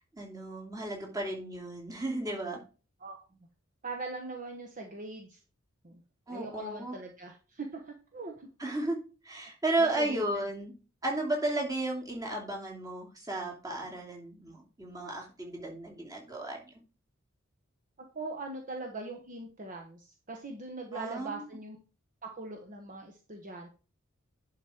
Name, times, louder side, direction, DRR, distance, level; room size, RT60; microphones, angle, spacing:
voice 1, 0.1-2.6 6.3-6.9 8.6-9.0 9.2-10.7 11.0-16.7 20.9-21.4, right 2 dB, 20° right, -1 dB, 2.9 m, -34 dB
voice 2, 3.8-5.4 5.8-6.0 6.3-8.5 9.8-10.4 18.1-21.8 22.2-23.7, right 3 dB, 40° right, 3 dB, 1.3 m, -41 dB
11.0 x 5.0 x 4.5 m, 0.34 s
head